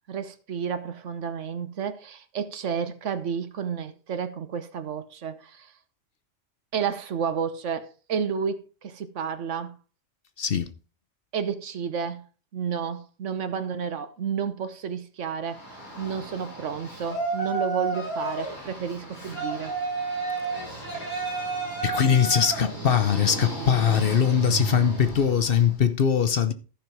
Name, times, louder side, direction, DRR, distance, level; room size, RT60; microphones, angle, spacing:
voice 1, 0.1-5.7 6.7-9.7 11.3-12.2 12.5-15.6 16.0-19.8, right 7 dB, 70° right, 1.2 m, -31 dB
voice 2, 10.4-10.7 21.8-26.5, left 8 dB, 55° left, 0.9 m, -21 dB
Yell, 15.5-25.7, right 3 dB, 35° left, 7.3 m, -32 dB
13.5 x 5.6 x 4.5 m
omnidirectional pair, 1.3 m